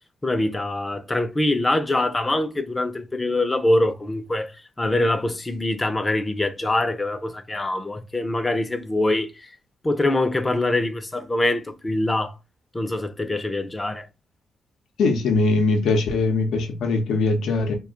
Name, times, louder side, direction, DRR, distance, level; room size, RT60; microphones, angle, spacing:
voice 1, 0.2-9.5 9.8-12.3 12.7-14.1, left 1 dB, 25° left, 0.6 m, -24 dB
voice 2, 15.0-17.7, left 3 dB, 75° left, 0.6 m, -21 dB
2.4 x 2.2 x 3.7 m
supercardioid pair, 50°, 0 cm